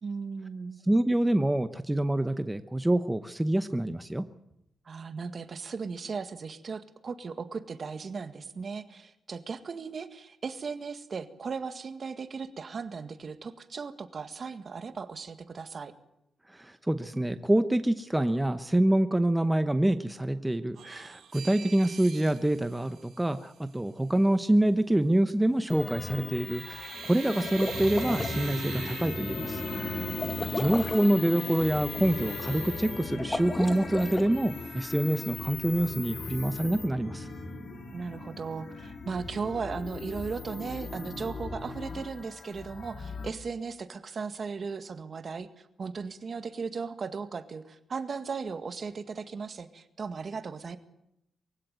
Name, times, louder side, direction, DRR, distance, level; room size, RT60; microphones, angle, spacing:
voice 1, 0.0-0.8 4.9-15.9 29.7-30.6 37.9-50.8, right 5 dB, 45° right, 10 dB, 1.8 m, -37 dB
voice 2, 0.9-4.2 16.5-30.1 30.6-37.3, right 1 dB, 10° right, 10 dB, 0.9 m, -26 dB
sound 1, 20.7-23.8 25.6-25.9 26.3-33.6 34.0-34.1 34.4-35.3 35.7-36.2, right 8 dB, 70° right, 2.5 m, -46 dB
sound 2, 25.7-43.3, left 3 dB, 45° left, 3.8 m, -37 dB
sound 3, 27.4-28.4 30.2-31.1 33.2-34.3, left 2 dB, 20° left, 2.0 m, -34 dB
23.5 x 16.0 x 9.3 m, 0.82 s
cardioid pair, 105°, 0 cm